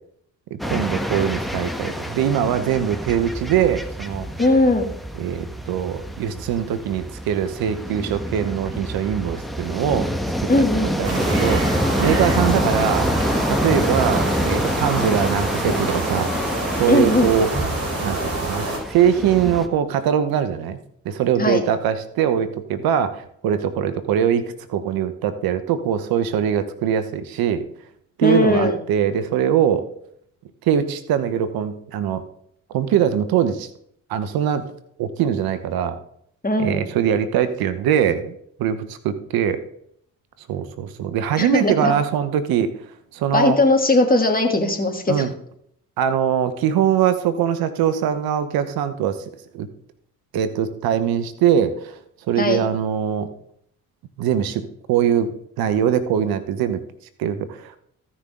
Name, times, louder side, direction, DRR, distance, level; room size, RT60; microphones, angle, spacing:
voice 1, 0.5-4.3 5.2-10.1 10.6-11.6 12.0-13.1 13.5-16.3 16.8-17.5 18.0-20.8 21.0-27.6 28.2-29.9 30.6-32.2 32.7-33.7 34.1-34.6 35.0-36.0 36.6-39.6 40.5-42.7 43.1-43.6 45.1-45.3 46.0-49.2 49.5-49.7 50.3-52.0 52.3-53.3 54.2-56.8 57.2-57.7, right 9 dB, 75° right, 12 dB, 1.0 m, -22 dB
sound 1, 0.6-19.7, equal, ahead, 1.5 m, -26 dB
voice 2, 4.4-4.9 10.5-10.9 16.9-17.3 21.4-21.6 28.2-28.8 36.4-36.8 41.4-41.9 43.3-45.3 52.4-52.6, left 2 dB, 25° left, 3 dB, 2.7 m, -18 dB
sound 2, 11.0-18.8, right 2 dB, 45° right, 4.5 m, -27 dB
15.0 x 6.2 x 3.8 m, 0.68 s
hypercardioid pair, 50°, 36 cm